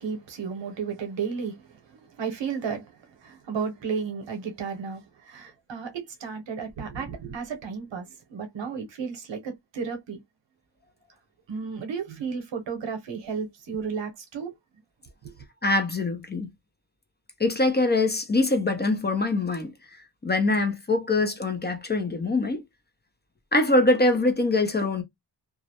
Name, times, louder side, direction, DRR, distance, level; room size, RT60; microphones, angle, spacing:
voice 1, 0.0-3.0 3.2-10.2 11.5-14.5 15.2-15.3, right 6 dB, 80° right, 0.9 m, -33 dB
voice 2, 15.6-16.5 17.4-19.7 20.2-22.6 23.5-25.0, left 2 dB, 25° left, 0.5 m, -23 dB
2.4 x 2.0 x 2.8 m
wide cardioid pair, 115°, 44 cm